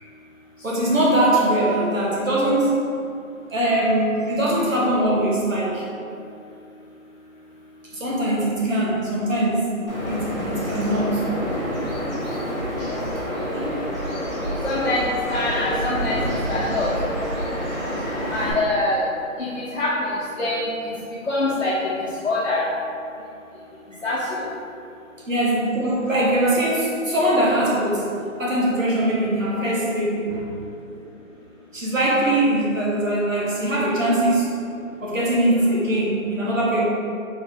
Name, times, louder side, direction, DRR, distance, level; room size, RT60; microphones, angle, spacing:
voice 1, 0.6-2.8 3.5-5.8 7.9-9.7 10.1-11.2 13.5-13.6 25.3-28.1 28.4-30.5 31.7-34.5 35.0-36.9, right 1 dB, 65° right, -6 dB, 1.3 m, -21 dB
Bird vocalization bird call bird song, 9.9-18.5, equal, 30° left, 1.1 m, -27 dB
voice 2, 14.6-15.0 15.3-16.2 16.5-16.9 18.3-19.0 19.4-20.7 21.3-21.7 22.2-22.7 24.0-24.2, left 2 dB, 55° left, -10 dB, 0.8 m, -24 dB
3.9 x 2.7 x 3.5 m, 2.6 s
figure-of-eight pair, 180°, 41 cm